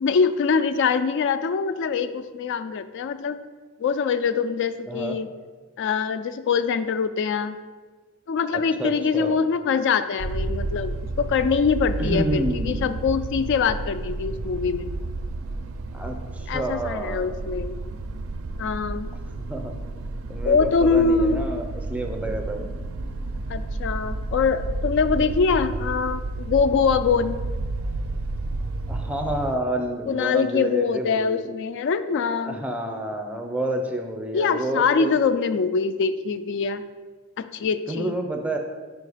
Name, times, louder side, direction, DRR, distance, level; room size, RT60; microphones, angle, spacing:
voice 1, 0.0-3.4 3.8-5.3 5.8-7.6 8.3-14.9 16.5-17.8 18.6-19.1 20.4-21.4 23.5-27.4 30.1-32.6 34.3-36.8 37.4-38.2, left 5 dB, 55° left, 12 dB, 0.3 m, -23 dB
voice 2, 8.5-9.4 12.0-12.8 15.9-17.3 19.5-19.7 20.3-22.7 28.9-31.5 32.2-35.2 37.9-38.6, right 1 dB, 5° right, 4 dB, 0.5 m, -29 dB
sound 1, 10.2-29.6, right 2 dB, 65° right, 0.4 m, -31 dB
5.2 x 4.6 x 4.9 m, 1.4 s
head